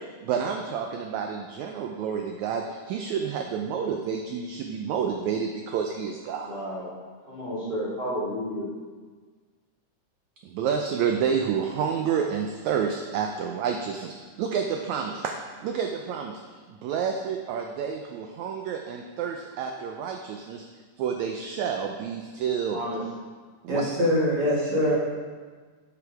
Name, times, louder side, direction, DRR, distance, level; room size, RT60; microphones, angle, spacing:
voice 1, 0.0-6.5 10.4-15.3 15.6-16.4 16.8-20.6 21.0-22.8 23.6-23.8, right 7 dB, 80° right, 3 dB, 1.7 m, -29 dB
voice 2, 6.4-6.9 7.3-8.7 22.7-23.0, equal, 20° left, -7 dB, 2.3 m, -31 dB
voice 3, 23.7-25.0, equal, 50° right, -6 dB, 2.3 m, -23 dB
12.5 x 5.6 x 4.7 m, 1.5 s
omnidirectional pair, 3.9 m